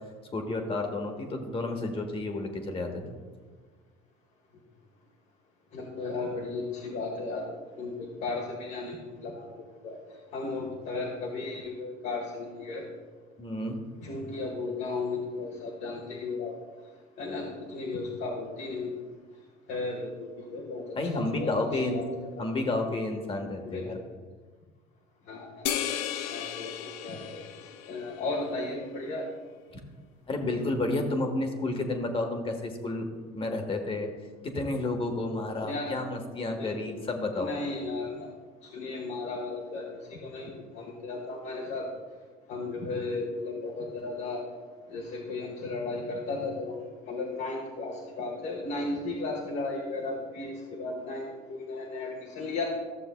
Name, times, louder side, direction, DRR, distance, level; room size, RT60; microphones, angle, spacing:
voice 1, 0.3-3.0 13.4-13.8 20.9-22.0 22.4-24.0 30.3-33.1 33.3-34.1 34.4-37.5, left 2 dB, 30° left, 4 dB, 1.4 m, -31 dB
voice 2, 5.7-7.4 7.8-9.5 9.8-10.0 10.3-12.8 14.0-16.5 17.2-18.9 19.7-22.5 23.6-24.0 25.3-27.4 27.9-29.3 35.6-36.0 36.6-37.0 37.3-38.3 38.6-41.9 42.5-44.4 44.9-52.6, left 3 dB, 60° left, -2 dB, 1.6 m, -35 dB
sound 1, 25.7-28.4, left 10 dB, 85° left, 0.5 m, -34 dB
14.0 x 6.7 x 2.3 m, 1.4 s
supercardioid pair, 95°, 19 cm